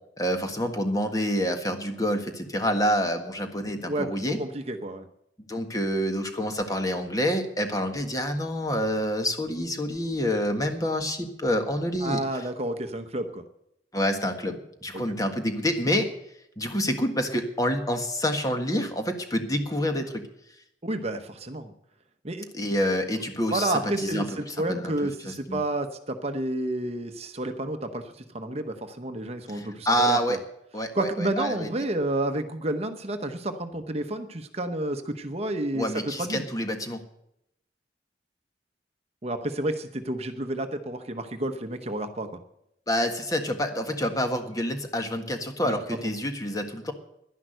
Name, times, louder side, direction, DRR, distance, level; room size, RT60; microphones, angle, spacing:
voice 1, 0.2-4.4 5.5-12.2 13.9-16.1 16.6-20.2 22.5-24.9 25.2-25.6 29.5-30.4 30.7-31.7 35.7-37.0 42.9-46.9, equal, 20° left, 6 dB, 1.6 m, -27 dB
voice 2, 3.9-5.1 12.0-13.4 14.9-15.2 20.8-21.7 22.2-22.5 23.5-30.4 30.9-35.9 36.2-36.4 39.2-42.3 45.6-45.7, right 1 dB, 35° right, 7 dB, 0.9 m, -30 dB
11.5 x 11.0 x 7.8 m, 0.78 s
head